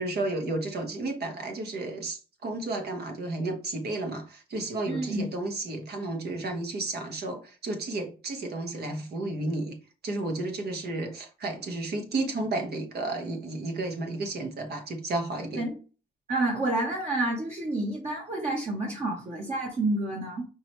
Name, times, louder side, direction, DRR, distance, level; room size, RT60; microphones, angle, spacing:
voice 1, 0.0-9.7 10.0-15.6, right 2 dB, 55° right, 1.4 m, -32 dB
voice 2, 4.9-5.3 15.5-15.8 16.3-20.5, right 2 dB, 35° right, 1.4 m, -29 dB
5.2 x 3.1 x 3.2 m
cardioid pair, 90°, 20 cm